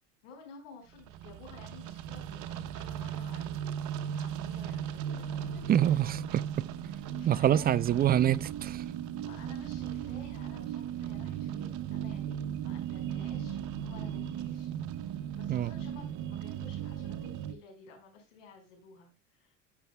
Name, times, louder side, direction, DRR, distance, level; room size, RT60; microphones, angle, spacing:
voice 1, 0.2-6.0 6.8-8.2 9.2-14.7 15.3-19.6, left 4 dB, 80° left, 4.9 m, -53 dB
sound 1, 1.0-17.6, right 9 dB, 55° right, 0.9 m, -37 dB
voice 2, 5.7-6.4 7.2-8.8 15.5-15.7, right 11 dB, 25° right, 0.4 m, -26 dB
12.5 x 6.8 x 2.2 m
supercardioid pair, 95°, 37 cm